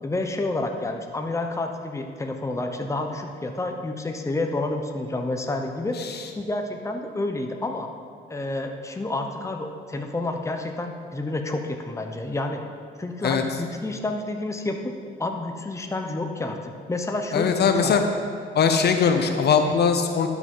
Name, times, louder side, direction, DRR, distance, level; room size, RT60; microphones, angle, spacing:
voice 1, 0.0-5.9 6.4-7.9 8.3-12.6 13.0-14.8 15.2-16.6 16.9-18.0, left 2 dB, 15° left, 4 dB, 0.9 m, -29 dB
voice 2, 17.3-18.0 18.5-20.3, left 6 dB, 55° left, 6 dB, 0.8 m, -20 dB
11.0 x 6.0 x 5.5 m, 2.2 s
cardioid pair, 90°, 20 cm